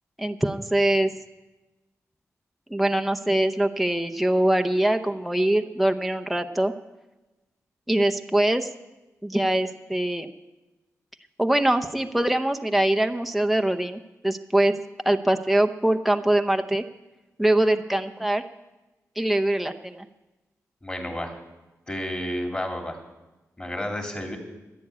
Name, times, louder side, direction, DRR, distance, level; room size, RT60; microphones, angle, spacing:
voice 1, 0.2-1.1 2.7-6.7 7.9-8.7 9.2-10.3 11.4-14.8 15.0-16.8 17.4-18.4 19.2-20.1, right 1 dB, ahead, 5 dB, 0.7 m, -23 dB
voice 2, 20.8-21.3 21.9-23.0 23.6-24.4, left 1 dB, 20° left, 2 dB, 2.9 m, -31 dB
15.5 x 10.5 x 8.4 m, 1.1 s
wide cardioid pair, 135°, 6 cm